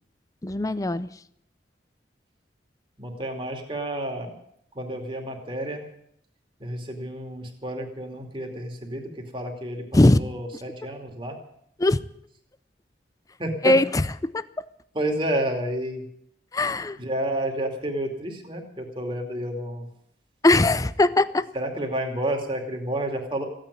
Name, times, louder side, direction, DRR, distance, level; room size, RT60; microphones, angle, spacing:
voice 1, 0.4-1.1 9.9-10.2 10.5-10.6 11.8-12.0 13.6-14.6 16.5-17.0 20.4-21.5, left 2 dB, 20° left, 16 dB, 0.5 m, -20 dB
voice 2, 3.0-4.3 4.7-5.8 6.6-9.8 10.1-11.4 13.4-13.7 14.9-16.1 17.0-19.9 21.5-23.4, right 1 dB, 30° right, 2 dB, 2.6 m, -30 dB
15.5 x 9.2 x 9.9 m, 0.71 s
head